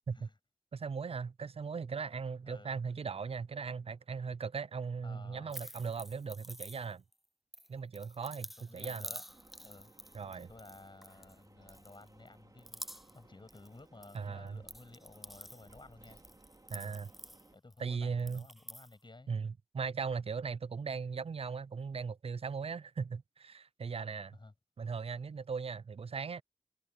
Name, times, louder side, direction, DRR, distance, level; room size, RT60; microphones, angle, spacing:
voice 1, 0.7-7.0 7.7-9.1 10.1-10.5 14.1-14.6 16.7-17.1 17.8-18.5 19.3-24.4 24.8-26.4, right 5 dB, 80° right, 0.4 m, -38 dB
voice 2, 5.0-5.7 8.7-9.3 9.6-9.9 10.2-16.2 16.7-17.0 17.5-19.3 24.3-24.5, left 2 dB, 50° left, 7.9 m, -54 dB
sound 1, 5.5-7.1 7.5-11.4 11.7-12.3 12.6-14.2 14.5-17.8 18.2-18.9, equal, ahead, 0.6 m, -49 dB
sound 2, 9.3-17.6, right 2 dB, 40° right, 3.0 m, -61 dB
wide cardioid pair, 70°, 10 cm